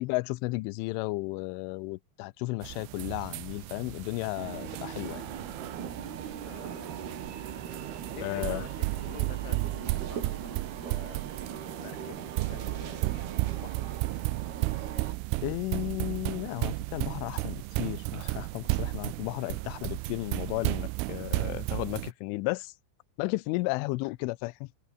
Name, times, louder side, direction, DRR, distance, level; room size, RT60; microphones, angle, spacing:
voice 1, 0.0-5.2 8.2-8.6 15.4-22.7 23.2-24.7, left 22 dB, 80° left, 3.1 m, -33 dB
sound 1, 2.6-22.1, right 23 dB, 85° right, 3.1 m, -34 dB
sound 2, 3.0-13.7, right 1 dB, 10° right, 2.3 m, -54 dB
sound 3, 4.4-15.1, right 8 dB, 55° right, 4.7 m, -40 dB
voice 2, 6.5-7.2 8.1-13.9 19.4-19.6, left 9 dB, 55° left, 4.0 m, -48 dB
omnidirectional pair, 5.8 m